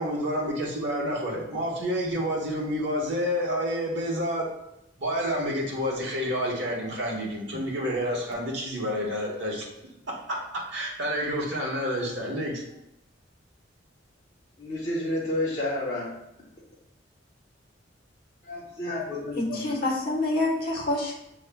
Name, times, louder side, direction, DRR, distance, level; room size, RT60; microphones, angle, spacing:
voice 1, 0.0-4.6 5.0-9.6 10.1-12.6, equal, 65° right, -2 dB, 1.2 m, -29 dB
voice 2, 14.6-16.1 18.4-19.9, left 1 dB, 35° left, -8 dB, 0.9 m, -30 dB
voice 3, 19.4-21.1, left 2 dB, 55° left, -3 dB, 1.1 m, -27 dB
7.2 x 3.0 x 2.3 m, 0.85 s
head